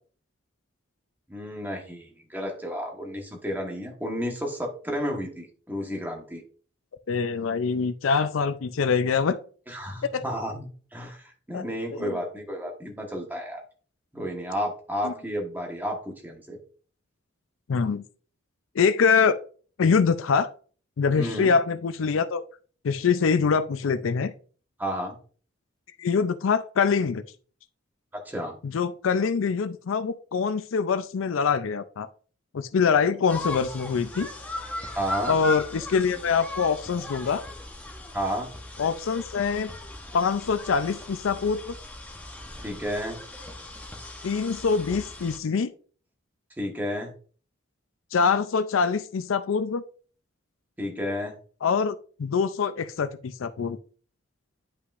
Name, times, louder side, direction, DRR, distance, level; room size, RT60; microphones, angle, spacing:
voice 1, 1.3-6.4 9.7-13.6 14.1-16.6 21.2-21.5 24.8-25.2 28.1-28.5 34.9-35.3 38.1-38.5 42.6-43.2 46.6-47.1 50.8-51.3, equal, 10° right, 1 dB, 1.3 m, -32 dB
voice 2, 7.1-9.4 10.0-10.2 11.5-11.7 11.9-12.2 15.0-15.1 17.7-18.0 18.8-19.4 19.8-20.5 21.0-22.4 22.8-24.3 26.0-27.2 28.6-32.1 32.5-34.3 35.3-37.4 38.8-39.7 40.1-41.8 44.2-45.7 48.1-49.8 51.6-53.8, left 5 dB, 85° left, 11 dB, 0.4 m, -24 dB
sound 1, 33.3-45.4, left 2 dB, 10° left, 0.8 m, -38 dB
9.7 x 5.6 x 2.5 m, 0.42 s
head